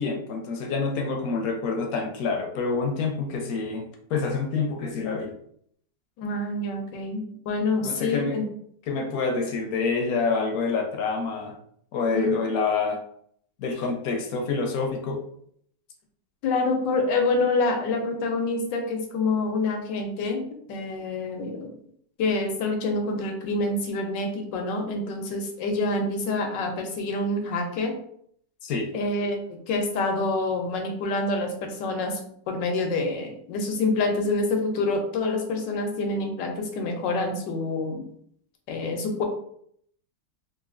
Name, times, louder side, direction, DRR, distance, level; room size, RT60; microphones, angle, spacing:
voice 1, 0.0-3.8 4.1-5.3 7.8-8.4 8.9-11.5 11.9-13.0 13.6-15.2 28.6-28.9, left 4 dB, 70° left, 2 dB, 0.9 m, -27 dB
voice 2, 6.2-8.4 12.1-12.4 16.4-20.4 20.7-21.7 22.2-27.9 28.9-32.2 32.5-38.1 38.7-39.2, left 2 dB, 85° left, 4 dB, 1.4 m, -27 dB
3.9 x 2.6 x 2.5 m, 0.66 s
omnidirectional pair, 1.9 m